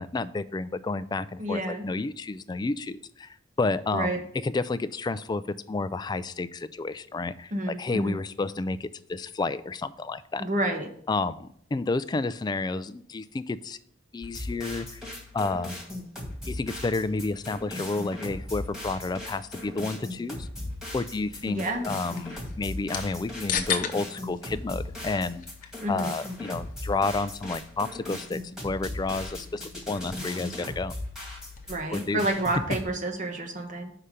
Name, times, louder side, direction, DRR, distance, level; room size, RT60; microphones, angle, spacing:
voice 1, 0.0-10.5 11.1-13.8 14.1-15.0 15.3-15.7 16.5-20.5 20.9-30.9 31.9-32.2, left 3 dB, 20° left, 14 dB, 0.3 m, -31 dB
voice 2, 1.4-1.8 3.9-4.2 7.5-8.2 10.4-10.9 21.5-21.8 25.8-26.1 31.7-33.9, right 1 dB, 40° right, 4 dB, 1.2 m, -29 dB
sound 1, 14.2-32.8, left 1 dB, 5° right, 2.0 m, -38 dB
sound 2, 21.3-31.9, left 7 dB, 45° left, 0.8 m, -39 dB
5.7 x 4.9 x 6.6 m, 0.66 s
head